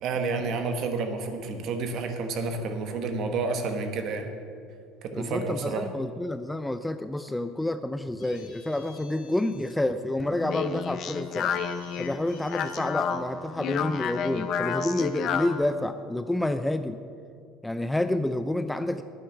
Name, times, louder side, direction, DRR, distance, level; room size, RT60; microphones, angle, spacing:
voice 1, 0.0-4.3 5.0-5.9, right 4 dB, 50° right, 5 dB, 1.3 m, -30 dB
voice 2, 5.1-11.6 12.0-17.0 17.6-19.0, left 1 dB, 5° left, 10 dB, 0.3 m, -29 dB
sound 1, 8.2-9.7 11.5-12.9, left 5 dB, 85° left, 2.2 m, -53 dB
Speech, 10.2-15.6, left 7 dB, 45° left, 0.7 m, -30 dB
9.9 x 9.3 x 5.7 m, 2.3 s
cardioid pair, 140°, 0 cm